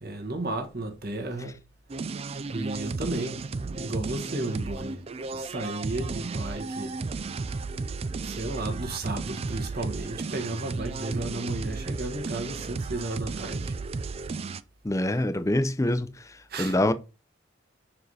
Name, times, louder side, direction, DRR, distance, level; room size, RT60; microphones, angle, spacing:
voice 1, 0.0-1.6 2.5-5.0 5.3-6.9 8.2-13.7 16.5-16.8, right 2 dB, 50° right, 1.5 m, -33 dB
sound 1, 1.9-14.6, right 3 dB, 30° right, 0.3 m, -34 dB
voice 2, 14.8-16.1 16.6-16.9, left 1 dB, 15° left, 0.6 m, -24 dB
5.3 x 4.8 x 4.8 m
head